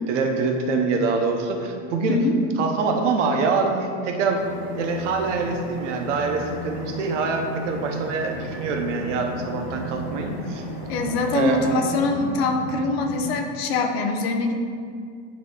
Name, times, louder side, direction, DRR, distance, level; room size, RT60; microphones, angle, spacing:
voice 1, 0.1-2.2 2.6-4.4 4.7-10.6 11.3-11.6, right 4 dB, 85° right, 4 dB, 0.9 m, -25 dB
voice 2, 2.1-2.5 10.9-14.6, left 3 dB, 60° left, 4 dB, 0.7 m, -23 dB
sound 1, 4.3-11.8, left 1 dB, 10° left, 0.3 m, -36 dB
sound 2, 7.7-13.4, equal, 50° right, 1.1 m, -38 dB
8.8 x 3.0 x 3.8 m, 2.2 s
supercardioid pair, 175°, 35 cm